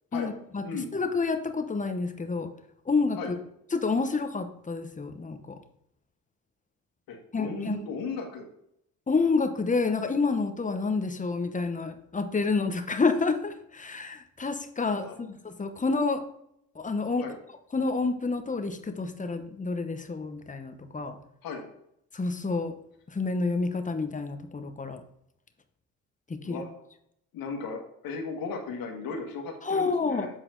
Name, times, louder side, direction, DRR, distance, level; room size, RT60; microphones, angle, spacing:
voice 1, 0.1-0.6 0.9-2.5 2.9-3.2 3.7-5.6 7.3-7.8 9.1-16.2 16.8-17.3 17.7-21.2 22.1-22.7 23.1-25.0 26.3-26.6 29.6-30.3, left 4 dB, 20° left, 7 dB, 0.9 m, -29 dB
voice 2, 7.1-8.5 14.9-15.3 17.2-17.3 21.4-21.6 26.4-26.7 27.3-30.3, left 4 dB, 75° left, 2 dB, 1.6 m, -36 dB
8.1 x 4.3 x 3.9 m, 0.75 s
supercardioid pair, 75°, 35 cm